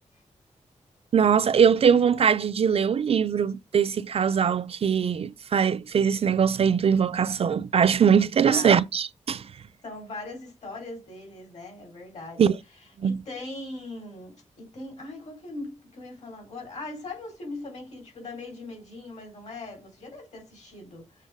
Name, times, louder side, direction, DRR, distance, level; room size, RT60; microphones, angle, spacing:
voice 1, 1.1-9.4 12.4-12.6 13.0-13.2, right 7 dB, 50° right, 0.4 m, -21 dB
voice 2, 8.4-8.8 9.8-12.4 13.0-21.1, left 2 dB, 65° left, 4.1 m, -40 dB
7.4 x 3.9 x 3.5 m
wide cardioid pair, 125°, 13 cm